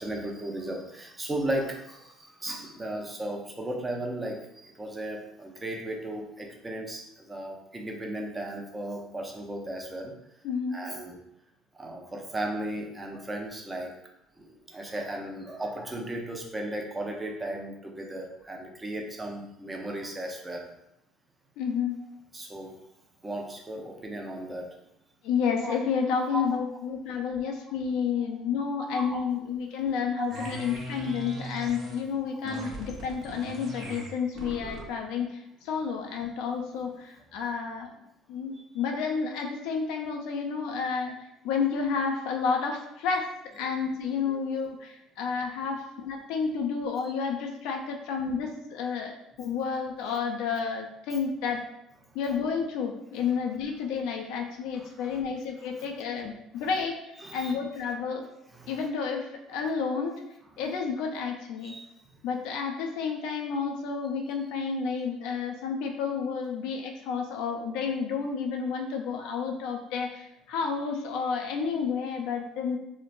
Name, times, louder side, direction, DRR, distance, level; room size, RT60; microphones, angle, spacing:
voice 1, 0.0-10.1 10.7-11.2 11.7-14.0 14.3-20.7 22.3-22.7 23.2-24.8 25.6-25.8 26.1-26.6 27.7-27.8 28.2-28.3 28.8-29.4 30.2-30.5 32.3-32.4 34.6-34.7 38.5-38.6 47.0-47.1 53.2-53.3 54.7-55.3 55.6-55.9 56.6-56.7 57.2-57.6 58.5-58.9 60.5-60.6 61.6-62.2, right 1 dB, 20° right, 1 dB, 0.6 m, -36 dB
voice 2, 10.4-10.8 21.6-22.0 25.2-35.4 35.6-37.9 38.3-41.2 41.4-43.3 43.6-51.6 52.1-57.0 57.3-58.2 58.7-60.2 60.6-61.7 62.2-72.8, left 6 dB, 75° left, 2 dB, 0.4 m, -30 dB
sound 1, 30.3-32.1 32.4-35.0, right 1 dB, 50° right, 0.7 m, -39 dB
3.0 x 2.0 x 2.5 m, 0.84 s
hypercardioid pair, 70°, 0 cm